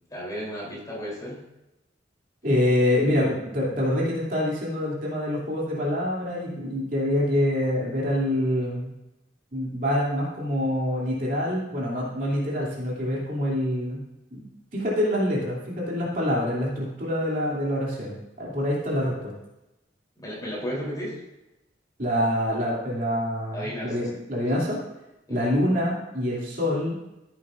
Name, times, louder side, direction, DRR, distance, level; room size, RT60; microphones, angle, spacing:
voice 1, 0.1-1.4 20.2-21.2 23.5-24.1 24.4-24.6 25.3-25.4, equal, 20° left, -5 dB, 3.5 m, -34 dB
voice 2, 2.4-8.9 9.5-14.0 14.3-14.4 14.7-19.3 22.0-24.8 25.3-27.0, left 1 dB, 50° right, -5 dB, 2.9 m, -26 dB
14.5 x 8.2 x 2.6 m, 0.94 s
head